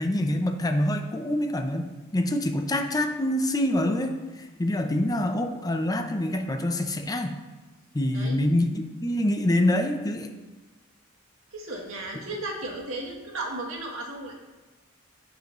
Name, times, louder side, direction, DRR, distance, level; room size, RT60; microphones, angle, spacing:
voice 1, 0.0-7.4 7.9-10.3, left 1 dB, 20° left, 5 dB, 0.6 m, -26 dB
voice 2, 11.5-14.3, right 2 dB, 75° right, -1 dB, 1.8 m, -35 dB
16.0 x 5.3 x 3.0 m, 1.2 s
head